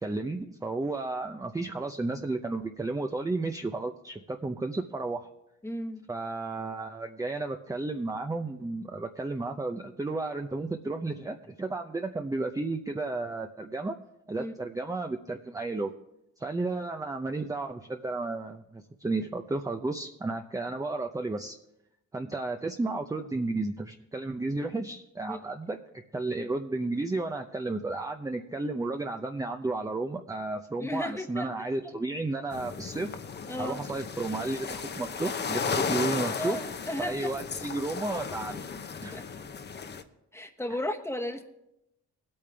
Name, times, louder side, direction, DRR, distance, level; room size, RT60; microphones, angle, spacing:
voice 1, 0.0-5.3 6.1-13.9 14.3-15.9 16.4-21.6 22.1-25.8 26.1-33.1 33.6-36.6 37.0-38.6 39.0-39.2, right 2 dB, 10° right, 4 dB, 0.6 m, -33 dB
voice 2, 5.6-6.1 14.3-14.5 25.3-25.4 30.8-31.9 33.5-33.8 35.7-37.3 39.1-39.2 40.3-41.4, left 1 dB, 10° left, 4 dB, 1.2 m, -35 dB
sound 1, 32.5-40.0, left 5 dB, 35° left, 0.8 m, -35 dB
20.0 x 8.7 x 3.4 m, 0.85 s
cardioid pair, 90°, 30 cm